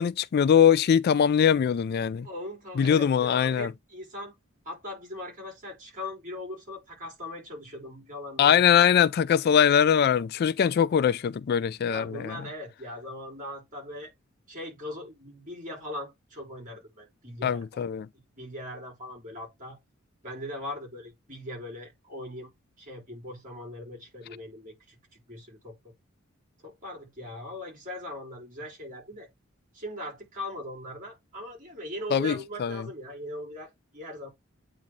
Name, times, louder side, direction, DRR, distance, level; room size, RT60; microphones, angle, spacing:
voice 1, 0.0-2.3 2.8-3.7 8.4-12.4 17.4-18.1 32.1-32.9, left 8 dB, 50° left, 0.3 m, -22 dB
voice 2, 2.2-4.3 4.6-8.7 11.8-14.1 14.5-17.9 18.4-19.8 20.2-22.5 22.8-25.9 26.6-29.3 29.7-34.3, left 1 dB, 40° right, 4.4 m, -40 dB
8.7 x 3.1 x 3.9 m
head